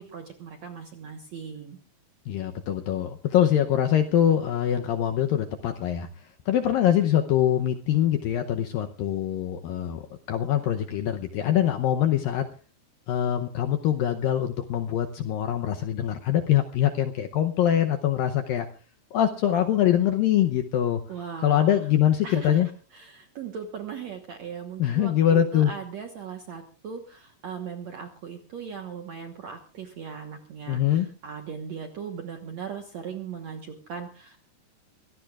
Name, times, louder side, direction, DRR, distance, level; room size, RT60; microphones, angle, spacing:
voice 1, 0.0-1.8 21.1-21.8 22.2-22.6 22.9-34.4, right 6 dB, 70° right, 4 dB, 1.7 m, -38 dB
voice 2, 2.3-10.0 10.3-12.5 13.1-18.7 19.1-21.0 21.4-22.7 24.8-25.7 30.7-31.1, left 10 dB, 75° left, 6 dB, 2.1 m, -23 dB
24.5 x 17.0 x 2.4 m, 0.37 s
omnidirectional pair, 5.0 m